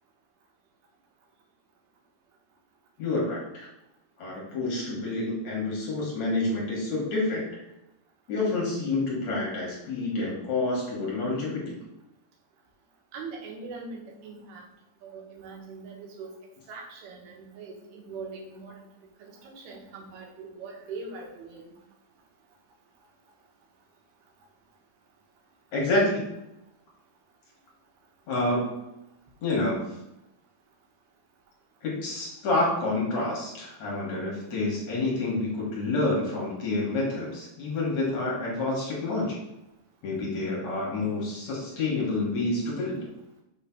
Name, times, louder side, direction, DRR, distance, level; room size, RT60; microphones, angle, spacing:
voice 1, 3.0-3.7 4.2-7.5 8.3-11.8 25.7-26.3 28.3-28.8 29.4-29.8 31.8-39.4 40.0-43.0, left 2 dB, 55° left, -3 dB, 2.4 m, -28 dB
voice 2, 13.1-14.6 15.0-16.3 16.7-18.8 19.2-21.7, right 4 dB, 80° right, -1 dB, 3.2 m, -41 dB
6.8 x 3.2 x 5.9 m, 0.88 s
omnidirectional pair, 4.5 m